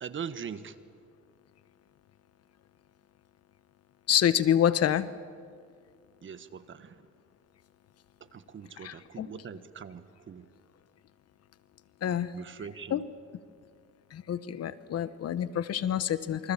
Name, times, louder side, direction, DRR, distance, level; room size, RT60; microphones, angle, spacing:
voice 1, 0.0-0.7 6.2-7.0 8.2-10.4 12.3-13.0, right 7 dB, 45° right, 12 dB, 1.4 m, -41 dB
voice 2, 4.1-5.1 8.8-9.3 12.0-12.3 12.9-13.0 14.1-16.5, left 10 dB, 55° left, 14 dB, 1.1 m, -27 dB
28.0 x 25.0 x 7.3 m, 2.2 s
cardioid pair, 105°, 29 cm